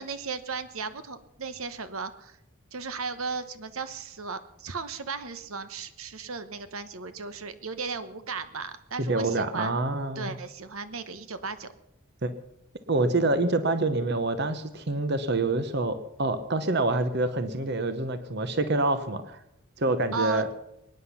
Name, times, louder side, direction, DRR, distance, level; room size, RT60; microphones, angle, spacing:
voice 1, 0.0-2.4 2.7-9.7 10.2-11.7 20.1-20.5, right 5 dB, 75° right, 11 dB, 1.1 m, -36 dB
voice 2, 9.0-10.4 12.2-12.3 12.9-19.4 19.8-20.5, right 2 dB, 50° right, 10 dB, 1.0 m, -26 dB
24.0 x 10.0 x 5.7 m, 0.83 s
head